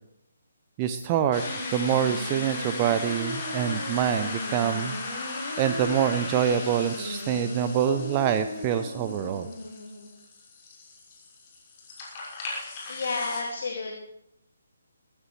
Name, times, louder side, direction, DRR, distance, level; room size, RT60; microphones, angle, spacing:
voice 1, 0.8-1.4 1.7-4.9 5.3-9.5, right 9 dB, 25° right, 9 dB, 0.6 m, -26 dB
sound 1, 1.2-10.2, left 1 dB, 70° left, 4.1 m, -38 dB
sound 2, 1.3-13.4, left 3 dB, 30° left, 5.7 m, -37 dB
voice 2, 12.9-13.9, left 3 dB, 50° left, 1 dB, 2.4 m, -30 dB
22.5 x 15.0 x 3.3 m, 0.77 s
figure-of-eight pair, 140°, 0 cm